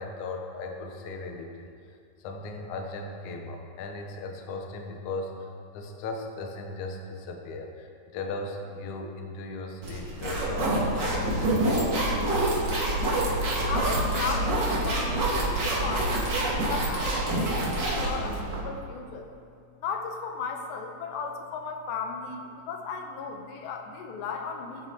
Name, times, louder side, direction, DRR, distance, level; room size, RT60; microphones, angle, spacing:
voice 1, 0.0-1.7 2.2-11.5, left 3 dB, 65° left, 2 dB, 2.0 m, -37 dB
sound 1, 9.8-18.6, right 1 dB, 35° right, 2.0 m, -26 dB
voice 2, 13.7-15.2 15.4-19.3 19.8-24.9, left 5 dB, 80° left, 4 dB, 3.1 m, -36 dB
17.0 x 10.5 x 4.8 m, 2.4 s
omnidirectional pair, 5.0 m